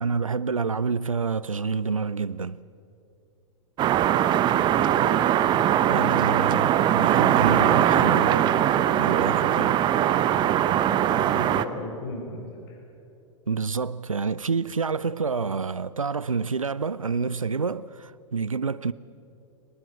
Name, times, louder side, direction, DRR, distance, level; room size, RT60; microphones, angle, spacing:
voice 1, 0.0-2.6 5.9-9.8 13.5-18.9, right 5 dB, 90° right, 0.5 m, -28 dB
sound 1, 3.8-11.7, right 11 dB, 25° right, 0.9 m, -21 dB
voice 2, 6.0-6.6 7.5-7.7 10.9-12.4 12.7-12.8, left 2 dB, 50° left, 5.6 m, -37 dB
24.0 x 19.5 x 7.5 m
figure-of-eight pair, 100°, 17 cm